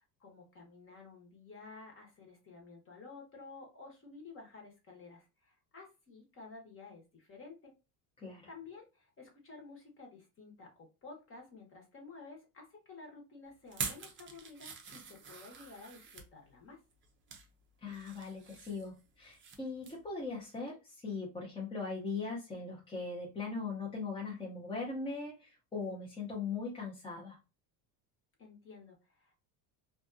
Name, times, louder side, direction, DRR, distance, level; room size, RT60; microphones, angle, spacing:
voice 1, 0.0-7.7 8.5-16.8 28.4-29.3, left 4 dB, 25° left, 1 dB, 1.0 m, -52 dB
voice 2, 8.2-8.5 17.8-27.4, left 4 dB, 10° left, -4 dB, 0.7 m, -40 dB
sound 1, 13.7-16.3 16.9-17.5 17.9-19.6 19.8-20.1 20.5-20.6, right 5 dB, 25° right, 0.5 m, -45 dB
2.5 x 2.4 x 2.5 m, 0.28 s
cardioid pair, 135°, 47 cm